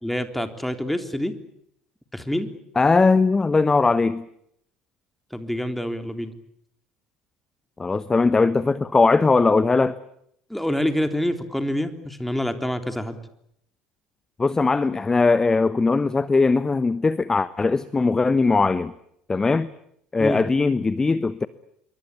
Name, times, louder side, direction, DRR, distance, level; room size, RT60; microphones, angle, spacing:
voice 1, 0.0-1.3 2.1-2.5 5.3-6.3 10.5-13.2 20.2-20.4, left 1 dB, 5° left, 8 dB, 3.6 m, -26 dB
voice 2, 2.8-4.2 7.8-9.9 14.4-18.9 19.3-19.7 20.1-21.5, left 3 dB, 20° left, 16 dB, 1.0 m, -20 dB
27.0 x 23.5 x 8.5 m, 0.72 s
hypercardioid pair, 60°, 3 cm